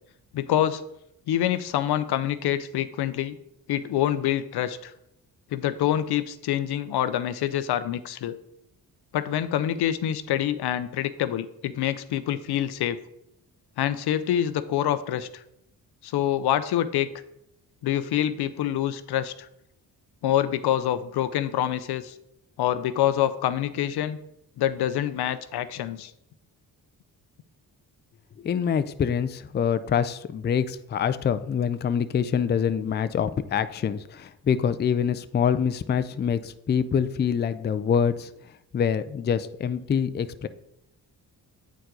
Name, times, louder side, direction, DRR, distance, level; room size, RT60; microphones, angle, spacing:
voice 1, 0.3-0.8 1.3-3.4 3.7-4.9 5.5-8.4 9.1-13.0 13.8-15.4 16.0-17.1 17.8-19.5 20.2-22.1 22.6-24.2 24.6-26.1, left 11 dB, 80° left, 13 dB, 0.6 m, -26 dB
voice 2, 28.4-38.3 38.7-40.5, left 7 dB, 30° left, 13 dB, 0.4 m, -25 dB
8.0 x 4.7 x 3.8 m, 0.80 s
cardioid pair, 80°, 39 cm